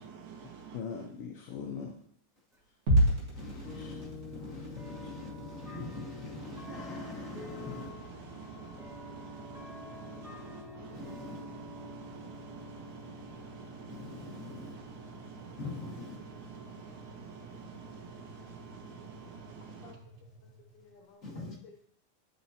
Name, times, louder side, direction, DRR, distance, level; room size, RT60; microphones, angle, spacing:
voice 1, 0.0-1.1 6.4-20.0, right 6 dB, 85° right, 2.4 m, -49 dB
voice 2, 0.7-2.0 2.7-2.8 3.7-4.0 19.8-20.0 20.4-21.2, left 6 dB, 75° left, 1.4 m, -42 dB
sound 1, 2.5-2.6 3.7-3.8 4.8-18.0, left 2 dB, ahead, 0.8 m, -50 dB
sound 2, 2.9-21.1, equal, 30° right, 1.7 m, -38 dB
voice 3, 3.3-7.9 10.9-11.4 13.9-14.7 15.6-16.2 21.2-21.6, left 3 dB, 50° left, 1.0 m, -43 dB
sound 3, 3.6-8.0, left 7 dB, 30° left, 2.1 m, -50 dB
10.5 x 6.2 x 2.8 m
omnidirectional pair, 3.4 m